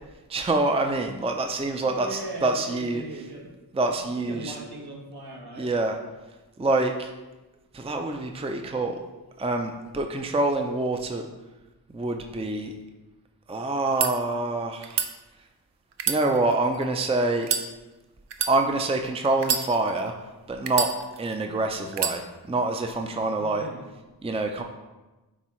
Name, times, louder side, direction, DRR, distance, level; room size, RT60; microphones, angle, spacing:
voice 1, 0.3-3.0 3.7-4.5 5.6-5.9 6.6-7.1 7.7-9.0 9.4-11.3 11.9-12.7 13.5-15.0 16.1-17.5 18.5-20.1 20.5-20.9 21.2-22.2 22.5-23.7 24.2-24.6, right 2 dB, 15° right, 4 dB, 0.5 m, -26 dB
voice 2, 1.8-3.5 4.1-5.7 10.9-11.1 23.3-23.9, right 1 dB, 65° right, -1 dB, 1.4 m, -39 dB
sound 1, 13.8-14.1 14.8-15.1 15.9-16.8 17.4-17.7 18.3-18.5 19.4-20.1 20.7-21.3 21.9-22.2, right 7 dB, 85° right, 0.6 m, -27 dB
9.8 x 3.6 x 3.1 m, 1.1 s
wide cardioid pair, 60°, 41 cm